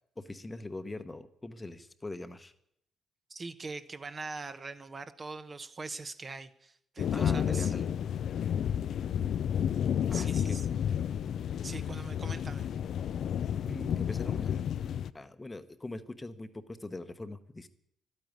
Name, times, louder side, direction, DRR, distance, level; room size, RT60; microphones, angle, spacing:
voice 1, 0.2-2.5 7.1-7.9 10.1-10.6 13.7-14.7 15.1-17.7, left 2 dB, 20° left, 11 dB, 1.0 m, -41 dB
voice 2, 3.3-7.7 10.1-10.7 11.6-12.7, right 3 dB, 35° right, 10 dB, 0.9 m, -42 dB
sound 1, 7.0-15.1, left 9 dB, 65° left, 0.5 m, -31 dB
12.5 x 8.9 x 9.7 m, 0.72 s
cardioid pair, 90°, 0 cm